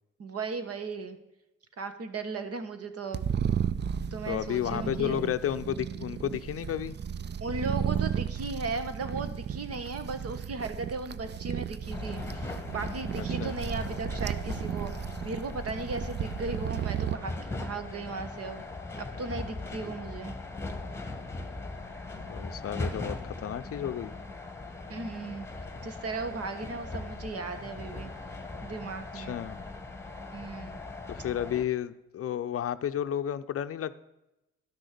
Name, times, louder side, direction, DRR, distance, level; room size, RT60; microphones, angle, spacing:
voice 1, 0.2-1.2 1.8-3.3 4.1-5.2 7.4-18.6 19.0-20.4 24.9-25.5 25.8-28.1 28.6-29.4 30.3-30.8, right 3 dB, 50° right, 9 dB, 1.4 m, -36 dB
sound 1, 3.1-17.2, right 8 dB, 35° right, 0.5 m, -34 dB
voice 2, 4.3-7.0 13.2-13.6 22.2-24.1 29.1-29.6 31.1-34.0, left 10 dB, 50° left, 12 dB, 0.6 m, -32 dB
sound 2, 11.9-31.6, left 3 dB, 10° left, 1.6 m, -39 dB
12.0 x 6.3 x 6.7 m, 0.94 s
cardioid pair, 90°, 30 cm